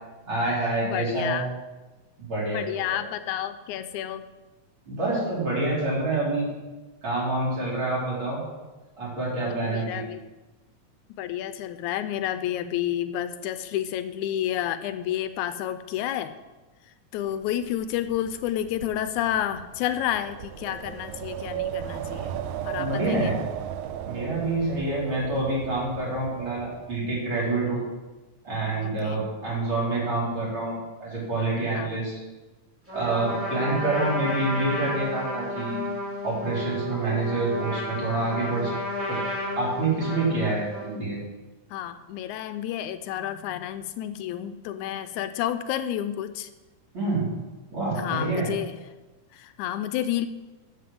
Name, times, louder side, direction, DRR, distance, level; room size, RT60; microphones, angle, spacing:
voice 1, 0.3-1.4 2.2-3.0 4.9-6.5 7.0-8.4 9.0-10.0 22.8-23.4 24.1-27.8 28.4-32.2 32.9-35.8 36.2-38.8 39.1-39.2 39.6-41.2 46.9-47.3 47.7-48.5, right 2 dB, 40° right, -6 dB, 4.7 m, -27 dB
voice 2, 0.8-1.5 2.5-4.3 9.5-10.2 11.2-16.3 16.9-22.4 22.6-23.4 28.8-29.3 31.7-32.0 41.7-46.5 48.0-48.8 49.3-50.3, left 11 dB, 85° left, 12 dB, 1.9 m, -30 dB
Wind, 17.3-27.4, right 10 dB, 80° right, 2.0 m, -36 dB
Trumpet, 32.9-41.0, left 1 dB, 5° right, 2.9 m, -32 dB
12.0 x 5.8 x 7.7 m, 1.2 s
omnidirectional pair, 3.4 m